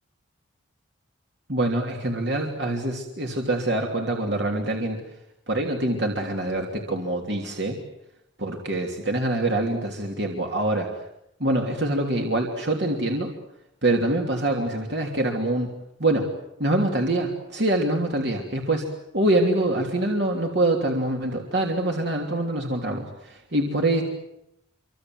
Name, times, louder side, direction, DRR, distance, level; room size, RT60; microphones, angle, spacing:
voice 1, 1.5-5.0 5.5-7.8 8.4-10.9 11.4-13.3 13.8-15.7 16.0-16.3 16.6-18.8 19.1-24.0, right 1 dB, 55° right, 1 dB, 3.2 m, -25 dB
27.5 x 25.5 x 7.9 m, 0.84 s
head